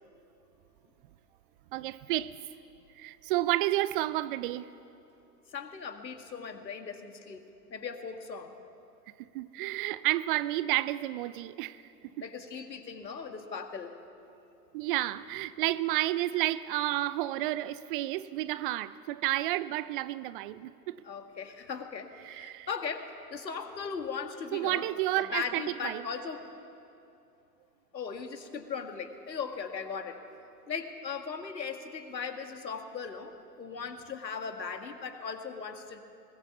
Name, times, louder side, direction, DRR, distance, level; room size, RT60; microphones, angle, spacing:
voice 1, 1.7-2.4 3.0-4.7 9.3-11.8 14.7-21.0 22.2-22.7 24.5-26.1, right 16 dB, 35° right, 0.5 m, -31 dB
voice 2, 5.5-8.5 12.2-13.9 21.0-24.9 25.1-26.4 27.9-30.2 30.7-36.0, left 5 dB, 85° left, 2.0 m, -38 dB
21.0 x 20.5 x 7.1 m
hypercardioid pair, 105°, 49 cm